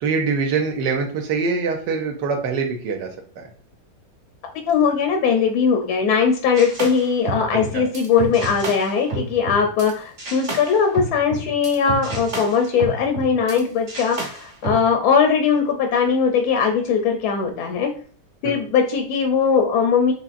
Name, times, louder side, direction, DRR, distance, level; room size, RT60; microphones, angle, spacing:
voice 1, 0.0-3.1 3.4-3.5 7.5-7.8 18.4-18.5, right 5 dB, 75° right, 4 dB, 1.2 m, -24 dB
voice 2, 4.7-17.9 18.4-20.1, left 6 dB, 75° left, 4 dB, 0.9 m, -20 dB
sound 1, 6.5-9.9 10.2-13.6 13.9-14.8, right 2 dB, 35° right, 1.1 m, -31 dB
4.1 x 2.9 x 2.4 m, 0.43 s
omnidirectional pair, 2.0 m